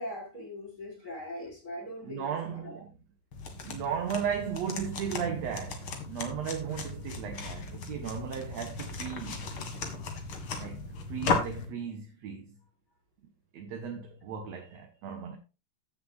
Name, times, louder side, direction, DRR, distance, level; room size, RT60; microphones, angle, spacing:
voice 1, 0.0-2.8, left 1 dB, 25° left, 5.5 m, -41 dB
voice 2, 2.0-2.9 3.5-9.5 10.6-12.6 13.5-15.4, right 7 dB, 60° right, 2.1 m, -36 dB
sound 1, 3.3-11.7, left 4 dB, 45° left, 2.2 m, -36 dB
16.0 x 6.9 x 2.4 m
omnidirectional pair, 3.9 m